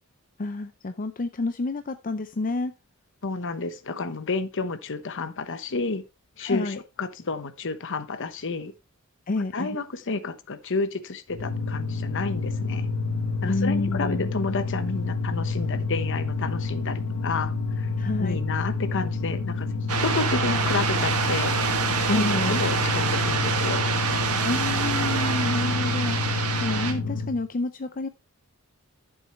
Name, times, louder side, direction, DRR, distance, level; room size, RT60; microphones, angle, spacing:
voice 1, 0.4-2.7 6.4-6.8 9.3-9.8 13.4-14.3 18.0-18.4 22.1-22.6 24.4-28.1, left 2 dB, 40° left, 0.6 m, -29 dB
voice 2, 3.2-6.0 6.4-8.7 9.5-12.9 13.4-17.9 18.2-19.7 20.0-21.5 22.1-24.0, left 3 dB, 60° left, 1.0 m, -30 dB
sound 1, 11.3-27.4, left 3 dB, 80° left, 1.2 m, -28 dB
sound 2, 19.9-26.9, right 5 dB, 80° right, 1.8 m, -26 dB
12.0 x 7.2 x 3.0 m
head